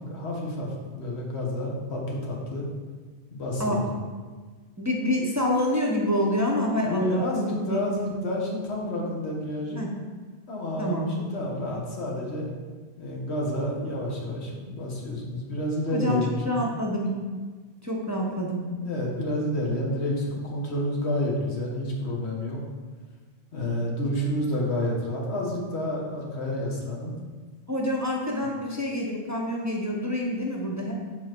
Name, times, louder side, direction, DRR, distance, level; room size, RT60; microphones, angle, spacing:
voice 1, 0.0-2.6 3.3-3.9 6.9-9.8 10.5-12.5 13.0-16.7 18.2-18.3 18.8-22.6 23.5-27.2, left 1 dB, 90° left, -2 dB, 1.5 m, -29 dB
voice 2, 4.8-8.1 9.7-9.9 10.8-11.1 15.9-17.2 17.8-18.7 27.7-30.9, left 1 dB, 20° right, -2 dB, 0.7 m, -27 dB
7.2 x 4.1 x 4.4 m, 1.4 s
omnidirectional pair, 1.1 m